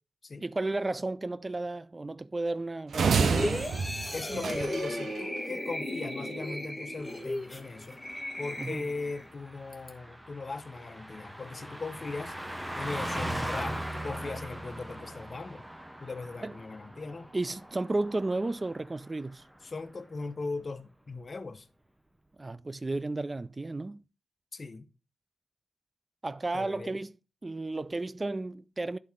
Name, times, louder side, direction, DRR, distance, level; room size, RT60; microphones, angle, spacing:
voice 1, 0.4-3.6 8.6-8.8 16.4-16.6 17.3-19.4 22.4-24.0 26.2-27.2 27.4-29.0, right 2 dB, 30° right, 0.4 m, -33 dB
sound 1, 2.9-5.2, right 5 dB, 80° right, 0.5 m, -28 dB
sound 2, 3.2-9.3 9.7-9.9, left 1 dB, 10° left, 1.3 m, -36 dB
voice 2, 4.1-8.0 8.4-12.3 12.7-15.6 16.0-17.3 19.6-21.7 24.5-24.8 26.5-27.0, left 3 dB, 45° left, 0.8 m, -39 dB
Car passing by, 7.1-19.0 19.3-19.6, right 1 dB, 10° right, 0.8 m, -40 dB
11.0 x 4.2 x 3.6 m
cardioid pair, 70°, 0 cm